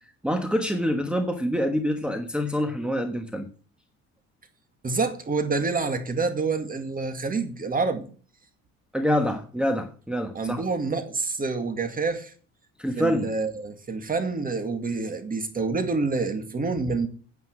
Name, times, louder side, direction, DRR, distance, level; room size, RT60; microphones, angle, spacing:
voice 1, 0.2-3.5 8.9-10.6 12.8-13.3, equal, 5° right, 1.3 m, -26 dB
voice 2, 4.8-8.1 10.3-12.3 13.0-17.1, right 4 dB, 30° right, 2.1 m, -27 dB
9.5 x 9.3 x 6.1 m
cardioid pair, 115°, 30 cm